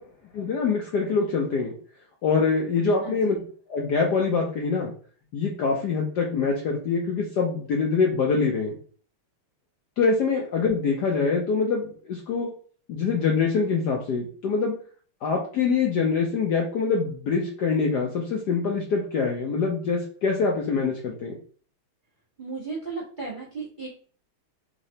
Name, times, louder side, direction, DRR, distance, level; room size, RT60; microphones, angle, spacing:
voice 1, 0.3-1.7 2.2-3.4 3.7-4.9 5.3-8.8 10.0-12.5 12.9-14.7 15.2-21.3, left 5 dB, 70° left, -1 dB, 1.0 m, -24 dB
voice 2, 3.0-3.4 22.4-23.9, right 4 dB, 35° right, -6 dB, 0.8 m, -35 dB
3.9 x 3.1 x 2.7 m, 0.43 s
omnidirectional pair, 2.4 m